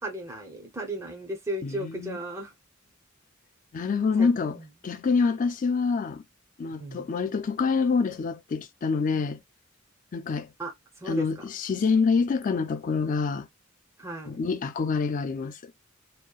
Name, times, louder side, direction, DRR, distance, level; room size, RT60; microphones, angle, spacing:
voice 1, 0.0-2.5 4.2-4.6 6.8-7.1 10.6-10.7 11.0-11.3 14.0-14.4, right 1 dB, 15° right, 0.6 m, -35 dB
voice 2, 1.6-2.2 3.7-4.6 4.8-6.2 6.6-9.4 10.1-10.5 11.1-13.5 14.3-15.7, left 5 dB, 40° left, 0.3 m, -26 dB
2.7 x 2.1 x 2.3 m
head